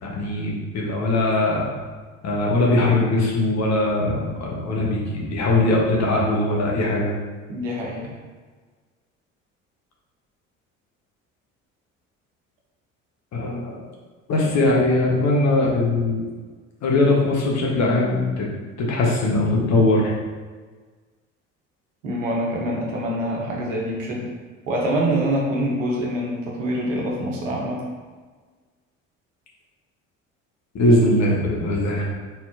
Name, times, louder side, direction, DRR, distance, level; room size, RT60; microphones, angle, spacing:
voice 1, 0.0-1.7 2.2-7.1 13.3-13.8 14.3-16.3 16.8-18.5 18.8-20.1 30.7-32.0, left 2 dB, 45° left, -2 dB, 1.4 m, -20 dB
voice 2, 7.5-8.1 22.0-24.3 24.7-27.8, right 1 dB, 75° right, -2 dB, 1.2 m, -25 dB
4.2 x 4.2 x 2.8 m, 1.4 s
figure-of-eight pair, 55°, 38 cm